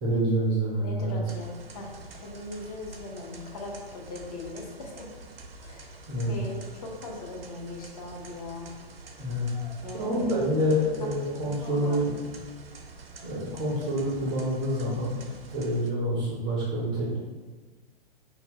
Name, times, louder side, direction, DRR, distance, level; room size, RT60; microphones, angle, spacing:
voice 1, 0.0-1.2 6.1-6.3 9.2-9.5 9.9-12.1 13.2-15.2 15.5-17.2, equal, 15° right, -6 dB, 0.4 m, -27 dB
voice 2, 0.8-5.1 5.6-6.0 6.3-8.7 9.8-10.4 11.4-12.3, left 2 dB, 40° left, 0 dB, 0.6 m, -40 dB
sound 1, 1.2-15.9, right 3 dB, 75° right, 0.5 m, -47 dB
2.7 x 2.2 x 3.6 m, 1.4 s
figure-of-eight pair, 110°, 29 cm